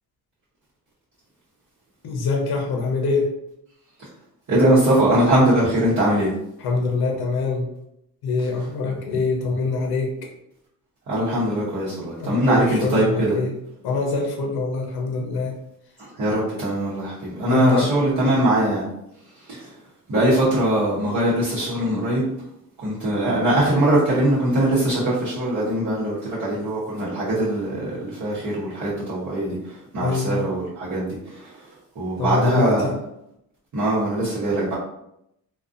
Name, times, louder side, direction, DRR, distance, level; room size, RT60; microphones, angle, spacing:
voice 1, 2.0-3.3 6.6-7.7 8.2-10.1 12.2-13.5 13.8-15.6 17.5-17.9 30.0-30.5 32.2-33.0, left 4 dB, 80° left, 1 dB, 0.7 m, -24 dB
voice 2, 4.5-6.3 11.1-13.4 16.0-18.9 19.4-19.7 20.1-22.2 22.8-31.7 31.9-32.9 33.7-34.7, right 1 dB, 50° right, -10 dB, 0.9 m, -21 dB
2.5 x 2.3 x 2.5 m, 0.78 s
cardioid pair, 130°, 37 cm